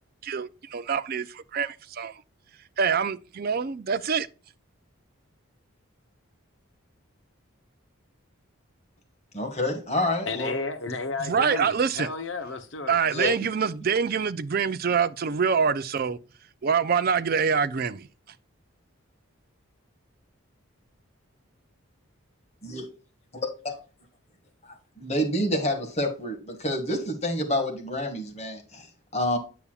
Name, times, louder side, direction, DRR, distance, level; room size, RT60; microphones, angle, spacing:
voice 1, 0.2-2.2 2.8-4.3 11.2-12.1 12.9-16.2 16.6-18.1, right 6 dB, 45° right, 0.4 m, -25 dB
voice 2, 9.3-10.5 13.1-13.3 22.6-22.9 23.3-23.8 24.7-29.4, left 1 dB, 30° left, 1.9 m, -28 dB
voice 3, 10.3-13.0, left 4 dB, 60° left, 0.9 m, -32 dB
8.4 x 6.9 x 2.4 m
head